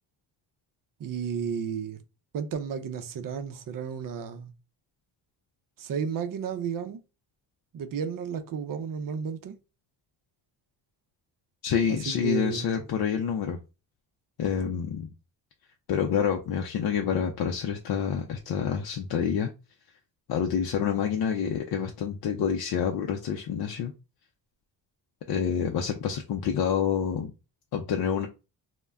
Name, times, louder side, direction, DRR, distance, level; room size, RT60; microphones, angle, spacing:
voice 1, 1.0-2.0 2.3-4.5 5.8-7.0 7.7-9.6 11.9-12.8, right 6 dB, 45° right, 0.6 m, -33 dB
voice 2, 11.6-13.6 14.4-15.1 15.9-19.5 20.3-23.9 25.3-27.3 27.7-28.3, left 7 dB, 55° left, 0.5 m, -27 dB
2.2 x 2.1 x 3.4 m
supercardioid pair, 65°, 46 cm